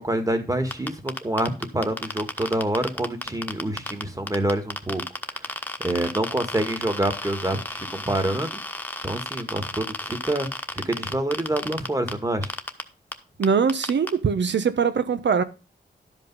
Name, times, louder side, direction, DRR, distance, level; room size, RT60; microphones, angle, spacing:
voice 1, 0.0-5.0 5.3-5.4 5.8-8.6 9.0-10.5 10.7-12.5, right 1 dB, 20° right, 1.8 m, -27 dB
sound 1, 0.7-4.0 4.3-12.1 12.4-12.8 13.1-13.2 13.4-14.1, left 1 dB, 10° left, 1.2 m, -32 dB
voice 2, 13.4-15.4, right 6 dB, 80° right, 1.1 m, -22 dB
12.0 x 5.4 x 5.5 m
wide cardioid pair, 105°, 18 cm